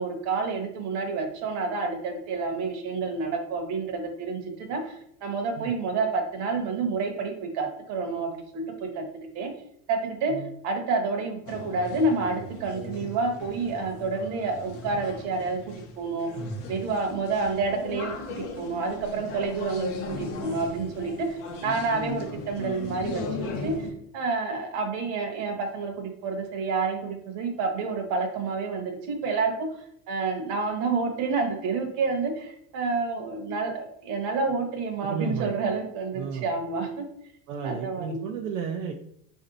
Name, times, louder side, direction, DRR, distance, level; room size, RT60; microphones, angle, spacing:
voice 1, 0.0-9.1 9.3-9.5 9.9-10.4 10.6-16.3 16.7-23.9 24.1-29.7 30.1-37.1 37.6-38.3, right 4 dB, 50° right, 4 dB, 1.0 m, -29 dB
sound 1, 11.5-23.9, left 3 dB, 40° left, 0.6 m, -37 dB
voice 2, 35.0-35.5 36.1-36.5 37.5-38.9, right 5 dB, 75° right, 3 dB, 0.5 m, -32 dB
4.2 x 2.7 x 3.9 m, 0.72 s
cardioid pair, 165°, 37 cm